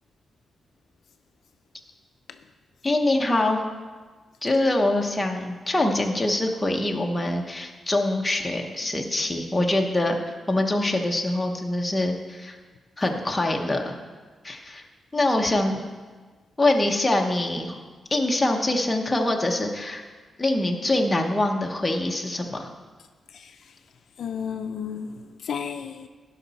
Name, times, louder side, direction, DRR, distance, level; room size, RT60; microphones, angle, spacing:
voice 1, 2.8-3.6 4.4-12.6 13.0-14.0 14.4-14.8 15.1-15.8 16.6-17.8 18.1-20.0 20.4-22.7, left 2 dB, 10° left, 1 dB, 0.8 m, -24 dB
voice 2, 23.3-23.7 24.2-26.1, left 7 dB, 65° left, 8 dB, 0.4 m, -33 dB
16.0 x 5.6 x 4.1 m, 1.4 s
wide cardioid pair, 180°, 0 cm